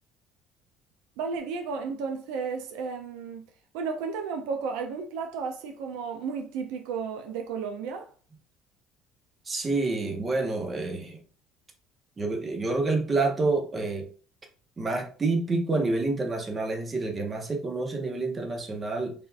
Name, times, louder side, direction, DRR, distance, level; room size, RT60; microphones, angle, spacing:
voice 1, 1.2-3.4 3.7-8.1, right 5 dB, 85° right, 0.4 m, -33 dB
voice 2, 9.5-11.2 12.2-14.1 14.8-19.1, right 3 dB, 25° right, 0.7 m, -28 dB
3.4 x 2.5 x 2.3 m
cardioid pair, 110°, 0 cm